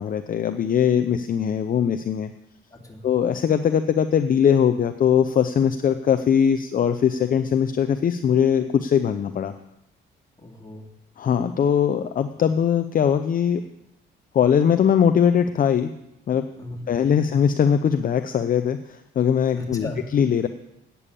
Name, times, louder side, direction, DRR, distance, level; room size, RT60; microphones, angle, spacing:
voice 1, 0.0-2.3 3.0-9.5 11.2-13.6 14.3-15.9 16.3-16.4 16.9-19.9 20.1-20.5, left 8 dB, 45° left, 8 dB, 0.6 m, -21 dB
voice 2, 2.7-3.0 10.4-10.9 12.4-12.5 16.6-17.3 19.5-20.1, left 1 dB, 15° left, -1 dB, 2.6 m, -37 dB
8.7 x 6.9 x 8.4 m, 0.86 s
cardioid pair, 90°, 20 cm